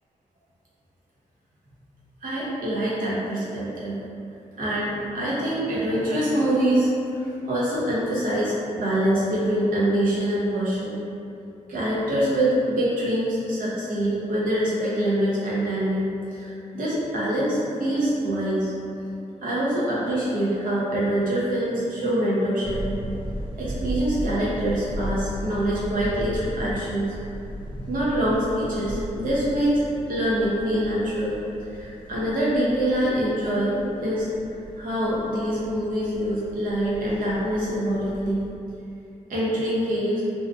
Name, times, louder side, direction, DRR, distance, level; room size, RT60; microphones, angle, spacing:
voice 1, 2.2-4.0 4.6-11.0 11.7-18.7 19.4-22.8 23.6-27.1 27.7-29.8 30.1-31.4 31.7-34.3 34.8-38.4 39.3-40.2, right 1 dB, 80° right, -8 dB, 0.8 m, -25 dB
sound 1, 22.6-38.5, right 1 dB, 35° right, 0.5 m, -36 dB
2.6 x 2.3 x 2.5 m, 2.7 s
cardioid pair, 75°, 14 cm